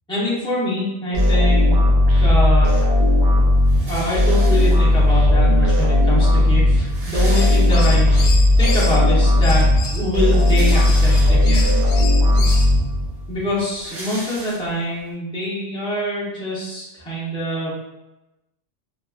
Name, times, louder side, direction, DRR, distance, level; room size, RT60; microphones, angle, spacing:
voice 1, 0.1-1.8 2.2-2.8 3.9-8.2 8.6-9.6 9.9-11.8 13.3-17.7, equal, 5° left, -9 dB, 0.6 m, -24 dB
sound 1, 1.1-13.4, left 1 dB, 55° right, 0.6 m, -16 dB
sound 2, 3.6-5.1 5.9-6.0 6.2-6.3 6.6-8.2 8.6-8.7 10.1-11.7 12.3-12.4 12.7-15.0, right 1 dB, 80° right, 1.2 m, -37 dB
sound 3, 7.2-9.0 9.4-12.7, left 3 dB, 75° left, 0.9 m, -31 dB
2.8 x 2.3 x 2.3 m, 0.99 s
omnidirectional pair, 1.4 m